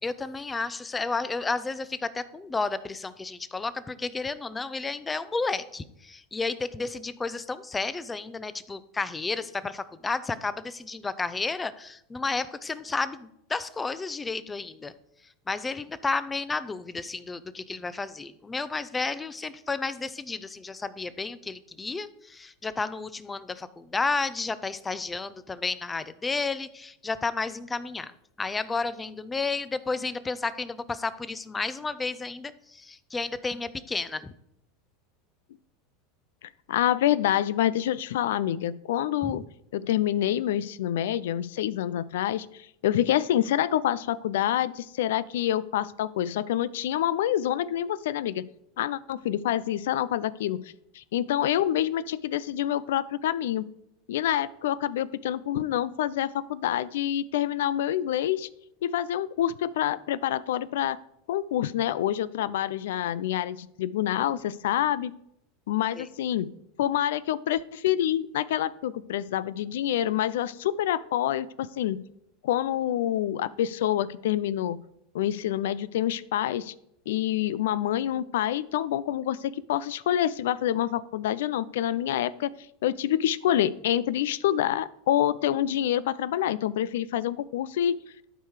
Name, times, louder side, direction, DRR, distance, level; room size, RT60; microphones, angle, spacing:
voice 1, 0.0-14.9 15.5-34.3 39.2-39.3 66.0-66.1, left 3 dB, 15° left, 15 dB, 0.6 m, -32 dB
voice 2, 36.7-39.4 39.7-48.5 48.8-50.6 50.9-53.7 54.1-58.5 58.8-61.0 61.3-65.1 65.7-66.5 66.8-72.0 72.4-74.8 75.1-76.7 77.1-82.5 82.8-88.0, left 11 dB, 75° left, 19 dB, 0.4 m, -27 dB
12.0 x 4.7 x 4.9 m, 0.77 s
hypercardioid pair, 100°, 0 cm